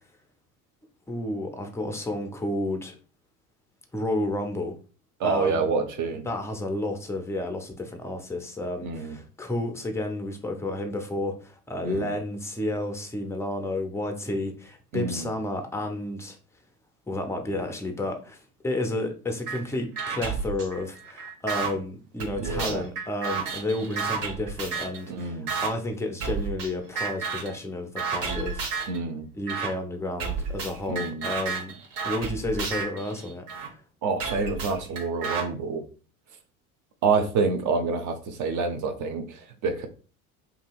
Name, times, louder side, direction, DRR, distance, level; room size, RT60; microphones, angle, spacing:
voice 1, 1.1-3.0 3.9-4.8 5.2-5.7 6.3-16.4 17.1-28.6 29.4-31.8 32.0-33.8, left 1 dB, 5° left, 0.4 m, -31 dB
voice 2, 5.2-6.3 8.8-9.2 11.8-12.1 14.9-15.3 22.4-22.8 25.1-25.5 28.9-29.3 30.9-31.3 34.0-35.8 37.0-39.9, right 4 dB, 45° right, 0.7 m, -27 dB
sound 1, 19.5-19.6 20.0-21.7 22.2-25.0 25.5-25.7 26.2-26.7 27.0-27.5 28.0-29.0 29.5-29.7 30.2-33.7 34.2-35.4, right 5 dB, 65° right, 1.0 m, -31 dB
2.8 x 2.7 x 2.3 m
hypercardioid pair, 70°, 43 cm